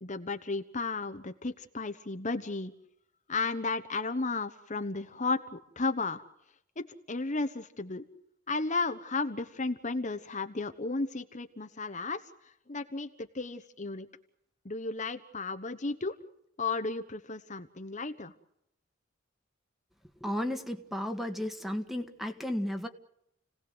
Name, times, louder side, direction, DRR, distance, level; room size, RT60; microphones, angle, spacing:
voice 1, 0.0-2.7 3.3-6.2 6.8-8.1 8.5-12.2 12.7-14.1 14.6-16.2 16.6-18.3, left 3 dB, 40° left, 7 dB, 1.1 m, -34 dB
voice 2, 20.2-22.9, left 1 dB, ahead, 7 dB, 1.8 m, -34 dB
30.0 x 18.0 x 8.0 m, 0.77 s
head